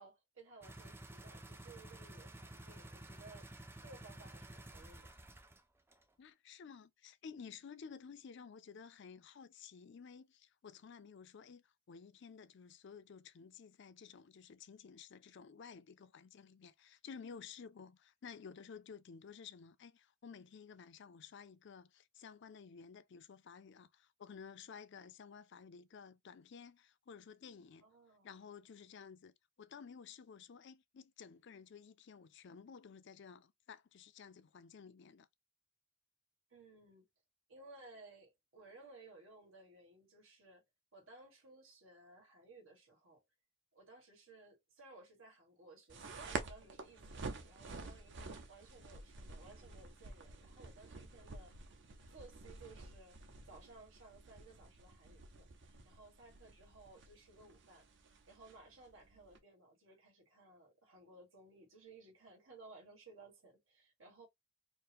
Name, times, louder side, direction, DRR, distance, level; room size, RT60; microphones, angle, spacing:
voice 1, 0.0-3.5 3.8-5.1 27.8-28.4 36.5-37.1 37.5-40.6 40.9-43.2 43.7-51.5 52.1-53.2 53.5-64.3, right 3 dB, 90° right, 1.8 m, -59 dB
sound 1, 0.6-5.6 5.9-6.0, right 1 dB, 10° right, 0.4 m, -52 dB
voice 2, 6.2-27.9 28.2-35.3, left 6 dB, 60° left, 0.4 m, -54 dB
sound 2, 45.9-59.4, right 3 dB, 60° right, 0.7 m, -49 dB
4.4 x 2.1 x 3.4 m
head